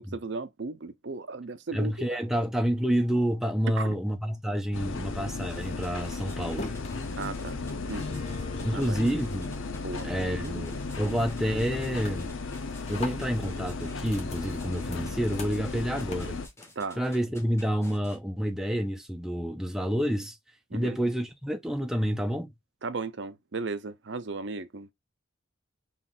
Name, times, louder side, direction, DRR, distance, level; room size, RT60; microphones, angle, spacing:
voice 1, 0.0-2.2 3.8-4.0 7.2-7.6 7.9-8.0 8.7-9.0 9.8-10.7 11.0-11.1 16.8-17.0 20.7-21.0 22.8-24.9, right 3 dB, 60° right, 0.6 m, -36 dB
voice 2, 1.7-6.7 8.6-9.5 10.0-12.3 12.9-16.4 17.0-20.4 20.7-22.5, equal, ahead, 0.6 m, -29 dB
sound 1, 4.7-16.5, left 3 dB, 80° left, 0.8 m, -35 dB
sound 2, 5.3-9.8 10.1-10.5 10.9-11.3 11.6-16.9, left 3 dB, 35° left, 1.2 m, -44 dB
sound 3, 5.4-18.2, left 1 dB, 15° left, 1.2 m, -52 dB
5.7 x 3.1 x 2.4 m
head